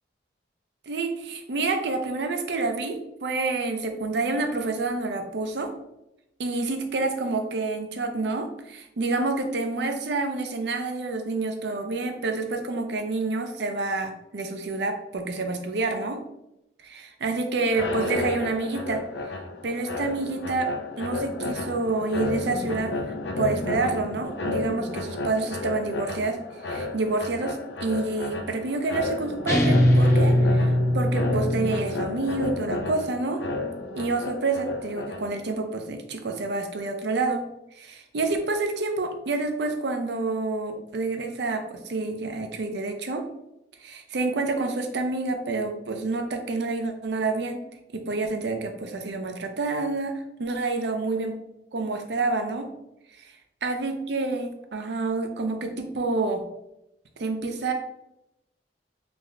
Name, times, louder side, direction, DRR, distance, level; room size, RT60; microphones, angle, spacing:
voice 1, 0.9-5.7 6.4-16.2 16.8-19.0 19.6-20.7 21.0-22.9 23.4-26.4 26.7-33.4 33.9-37.4 37.8-43.2 43.8-47.6 47.9-51.3 51.7-52.7 53.2-53.3 53.6-56.4 57.2-57.7, right 3 dB, 75° right, 5 dB, 0.5 m, -28 dB
sound 1, 17.7-35.5, left 2 dB, 85° left, 0.4 m, -32 dB
sound 2, 29.5-32.0, left 1 dB, 15° left, 0.4 m, -21 dB
3.4 x 2.1 x 3.6 m, 0.86 s
head